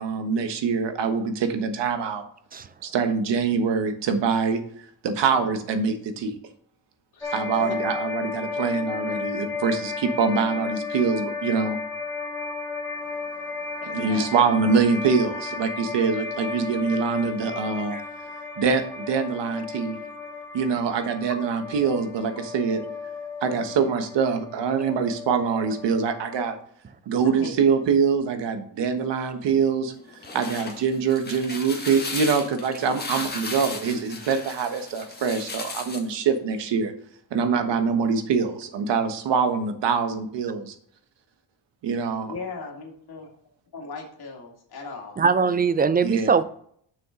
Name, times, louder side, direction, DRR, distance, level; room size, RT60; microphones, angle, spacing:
voice 1, 0.0-2.2 2.8-4.6 5.0-6.4 7.3-11.8 13.9-18.0 18.6-20.0 20.5-22.8 23.4-26.6 27.1-29.9 30.3-36.9 37.3-40.7 41.8-42.3 46.0-46.4, right 5 dB, 70° right, 1.3 m, -24 dB
voice 2, 7.1-7.8 13.8-14.3 27.2-27.5 42.3-43.3 43.7-45.2, left 4 dB, 55° left, 2.4 m, -38 dB
sound 1, 7.2-26.5, left 4 dB, 5° left, 1.8 m, -34 dB
sound 2, 30.0-36.1, left 3 dB, 20° left, 1.7 m, -35 dB
voice 3, 45.2-46.4, right 5 dB, 25° right, 0.3 m, -21 dB
7.0 x 6.5 x 3.8 m
cardioid pair, 135°, 44 cm